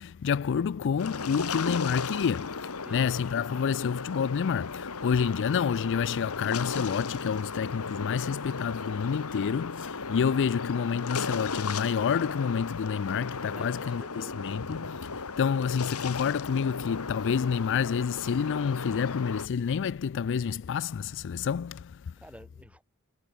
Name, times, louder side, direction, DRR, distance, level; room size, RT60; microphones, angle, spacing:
voice 1, 0.0-22.1, left 7 dB, 55° left, 0.4 m, -29 dB
sound 1, 1.0-19.5, left 4 dB, 75° left, 1.7 m, -36 dB
voice 2, 13.5-14.5 22.2-22.8, equal, 5° right, 5.3 m, -49 dB
head